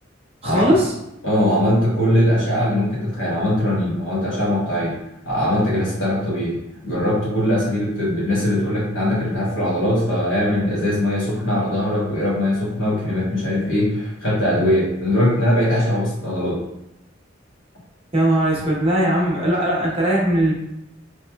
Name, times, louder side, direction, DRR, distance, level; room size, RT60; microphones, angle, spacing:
voice 1, 0.4-0.9 18.1-20.5, right 1 dB, 30° right, -4 dB, 0.8 m, -19 dB
voice 2, 1.2-5.0 5.2-16.6, left 1 dB, 75° left, -7 dB, 1.4 m, -21 dB
3.1 x 2.9 x 2.3 m, 0.88 s
head